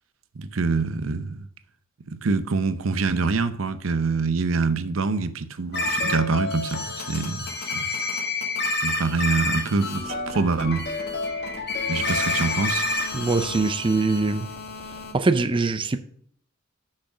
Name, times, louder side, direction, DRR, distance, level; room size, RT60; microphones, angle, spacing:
voice 1, 0.4-1.5 2.2-7.5 7.7-7.8 8.8-10.8 11.9-12.9, right 4 dB, 75° right, 0.7 m, -25 dB
sound 1, 5.7-15.1, left 2 dB, 55° left, 1.4 m, -29 dB
voice 2, 13.1-14.5 15.1-16.0, right 3 dB, 25° right, 0.4 m, -22 dB
6.4 x 6.1 x 6.0 m
head